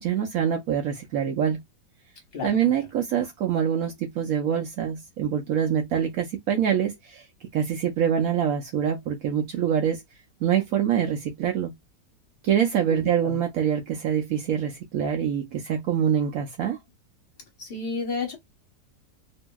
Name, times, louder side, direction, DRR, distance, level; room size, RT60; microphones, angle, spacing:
voice 1, 0.0-1.6 2.4-7.2 7.5-10.0 10.4-11.7 12.4-16.8, right 8 dB, 70° right, 0.8 m, -25 dB
voice 2, 2.3-2.8 12.9-13.4 17.6-18.4, left 4 dB, 40° left, 0.9 m, -32 dB
2.7 x 2.6 x 2.2 m
omnidirectional pair, 1.9 m